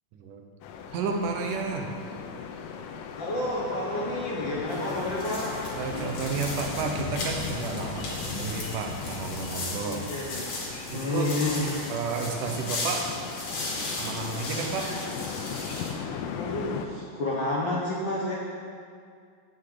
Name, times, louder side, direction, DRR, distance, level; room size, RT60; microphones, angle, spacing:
voice 1, 0.1-0.4 0.9-1.9 4.7-4.9 5.7-10.0 10.9-11.3 11.9-13.1 14.0-15.0, right 5 dB, 75° right, 3 dB, 2.4 m, -32 dB
sound 1, 0.6-16.9, left 6 dB, 85° left, 2.4 m, -38 dB
voice 2, 3.2-5.6 9.8-10.5 10.9-11.7 16.4-18.4, left 2 dB, 65° left, -5 dB, 1.1 m, -30 dB
sound 2, 4.7-15.9, left 2 dB, 50° left, 2.7 m, -36 dB
15.5 x 6.6 x 3.9 m, 2.2 s
omnidirectional pair, 3.9 m